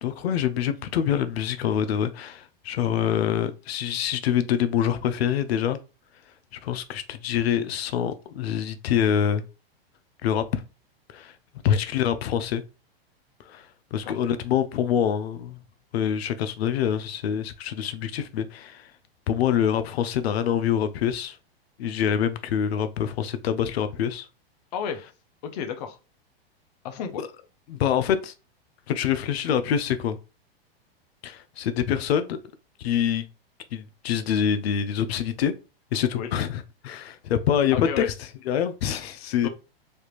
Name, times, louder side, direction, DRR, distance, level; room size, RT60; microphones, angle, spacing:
voice 1, 0.0-5.8 6.6-9.4 10.2-10.6 11.1-11.3 11.6-12.6 13.5-13.6 13.9-15.6 15.9-18.9 19.3-21.4 21.8-24.3 27.2-27.3 27.7-28.3 28.9-30.2 31.2-32.4 32.8-33.2 33.7-35.5 35.9-38.1 38.5-39.5, left 9 dB, 90° left, 0.5 m, -25 dB
voice 2, 25.4-26.0 26.8-27.2 36.1-36.3 37.7-38.1 39.4-39.5, left 7 dB, 40° left, 0.5 m, -32 dB
3.3 x 2.4 x 2.9 m
supercardioid pair, 160°, 30 cm